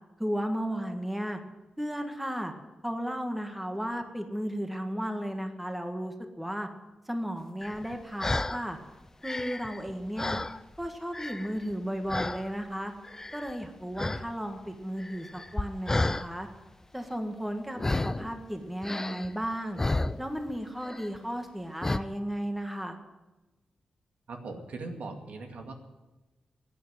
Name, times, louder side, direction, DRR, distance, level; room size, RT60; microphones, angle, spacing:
voice 1, 0.2-1.4 1.8-2.5 2.8-6.7 7.1-8.8 9.2-10.4 10.8-12.9 13.3-16.5 16.9-19.8 20.2-23.0, equal, 5° right, 5 dB, 1.7 m, -34 dB
sound 1, 7.6-8.6 9.1-10.9 11.1-11.7 12.1-12.5 13.0-13.7 14.0-14.3 14.5-16.3 17.8-18.3 18.8-20.5 20.8-21.2 21.8-22.0, left 2 dB, 20° left, 0.6 m, -32 dB
voice 2, 24.3-25.7, right 3 dB, 70° right, 4 dB, 2.2 m, -40 dB
15.5 x 9.5 x 9.4 m, 1.1 s
wide cardioid pair, 105°, 2 cm